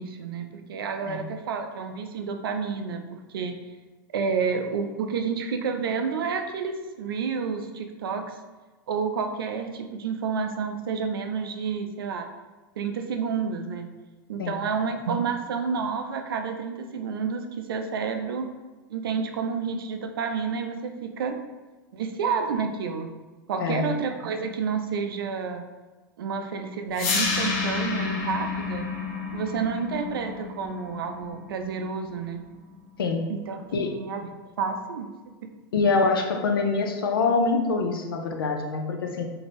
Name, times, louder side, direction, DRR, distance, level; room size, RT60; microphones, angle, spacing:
voice 1, 0.0-3.6 4.1-8.4 8.9-12.3 12.8-13.9 14.3-18.5 18.9-21.4 21.9-23.1 23.5-25.6 26.2-28.9 29.3-32.5 33.3-33.6 34.0-34.3 34.6-35.1 35.4-35.5, right 5 dB, 85° right, 6 dB, 0.4 m, -30 dB
sound 1, 26.9-33.0, left 4 dB, 55° left, 0.7 m, -30 dB
voice 2, 35.7-39.2, left 4 dB, 90° left, 3 dB, 0.5 m, -25 dB
2.7 x 2.5 x 3.0 m, 1.2 s
hypercardioid pair, 105°, 12 cm